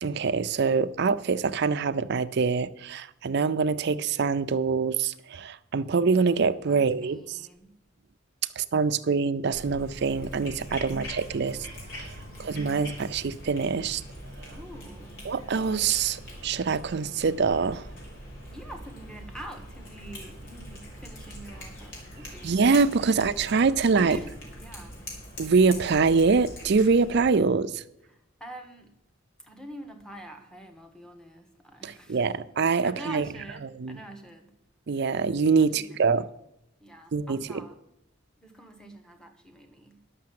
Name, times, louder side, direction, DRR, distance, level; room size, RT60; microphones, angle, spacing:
voice 1, 0.0-7.2 8.6-11.6 11.9-14.0 15.3-17.8 22.4-24.2 25.4-27.8 31.8-33.3 33.8-34.0 34.9-36.2 37.1-37.4, right 5 dB, 55° right, 0.5 m, -24 dB
voice 2, 6.7-7.8 10.7-11.1 12.2-12.7 14.5-15.3 18.5-23.2 23.9-25.1 28.1-28.9 29.4-32.4 32.8-34.5 35.6-36.3 36.8-37.8 38.4-40.0, right 1 dB, 5° left, 1.1 m, -46 dB
Cat, 9.5-27.3, equal, 70° left, 3.9 m, -42 dB
10.5 x 6.5 x 7.7 m
head